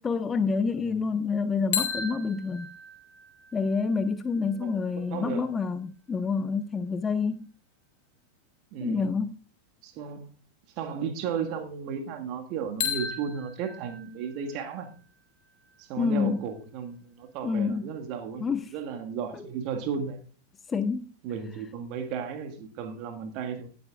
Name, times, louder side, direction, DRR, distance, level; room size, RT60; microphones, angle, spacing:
voice 1, 0.0-2.7 3.5-7.5 8.8-9.3 16.0-16.4 17.4-17.8 18.4-18.7 19.3-19.4 20.7-21.1, left 5 dB, 20° left, 0.5 m, -28 dB
voice 2, 0.7-1.0 4.5-5.4 8.7-9.1 9.8-10.4 10.8-14.9 15.8-18.5 18.7-20.2 21.2-23.7, right 7 dB, 40° right, 1.7 m, -34 dB
sound 1, 1.7-5.6 12.8-16.7, left 7 dB, 50° left, 2.5 m, -37 dB
17.5 x 8.6 x 2.4 m
figure-of-eight pair, 90°, 0 cm